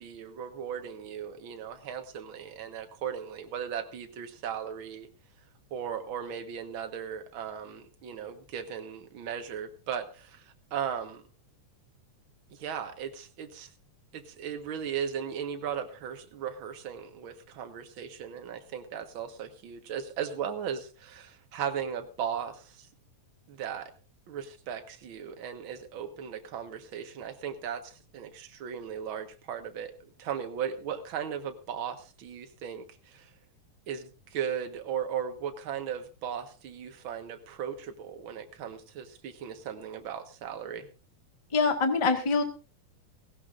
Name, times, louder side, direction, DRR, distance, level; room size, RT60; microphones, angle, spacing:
voice 1, 0.0-5.1 5.7-11.2 12.5-13.7 14.1-22.9 23.5-23.9 24.3-33.3 33.9-40.9, right 8 dB, 50° right, 6 dB, 1.8 m, -37 dB
voice 2, 41.5-42.4, left 4 dB, 25° left, 6 dB, 0.7 m, -24 dB
17.5 x 17.0 x 2.6 m, 0.34 s
omnidirectional pair, 3.6 m